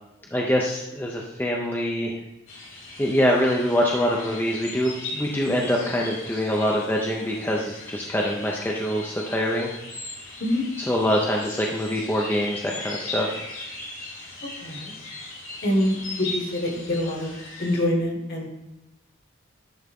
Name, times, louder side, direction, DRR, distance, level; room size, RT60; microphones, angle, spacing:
voice 1, 0.3-2.2 3.0-9.7 10.9-13.4, equal, 10° left, -2 dB, 0.5 m, -24 dB
sound 1, 2.5-17.8, left 2 dB, 90° left, 2.3 m, -38 dB
voice 2, 14.6-14.9 15.6-17.3 17.6-18.5, left 1 dB, 50° left, 1 dB, 1.5 m, -25 dB
10.5 x 3.5 x 3.6 m, 1.0 s
head